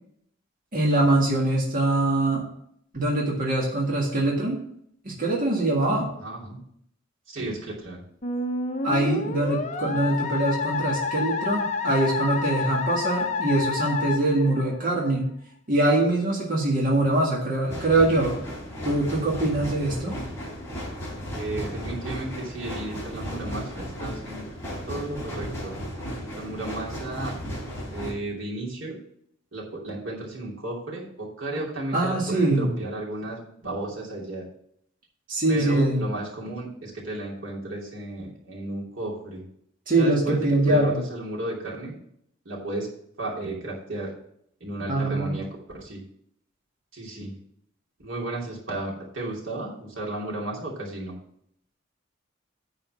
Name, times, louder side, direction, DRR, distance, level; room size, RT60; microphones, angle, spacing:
voice 1, 0.7-2.5 2.9-4.6 5.0-6.1 8.8-15.3 15.7-18.4 18.8-20.1 31.9-32.8 35.3-36.0 39.9-41.0 44.9-45.4, right 2 dB, 45° right, -3 dB, 1.8 m, -23 dB
voice 2, 6.2-6.6 7.3-8.0 21.3-24.4 24.9-25.8 26.3-27.4 27.9-29.0 29.5-34.5 35.5-39.4 39.9-41.9 42.4-42.9 43.2-44.1 44.6-46.0 46.9-47.3 48.0-51.2, right 2 dB, 85° right, -3 dB, 2.8 m, -33 dB
Musical instrument, 8.2-15.1, left 4 dB, 40° left, 0.8 m, -29 dB
sound 1, 17.7-28.1, equal, 15° left, 3.7 m, -35 dB
9.4 x 4.2 x 7.3 m, 0.69 s
head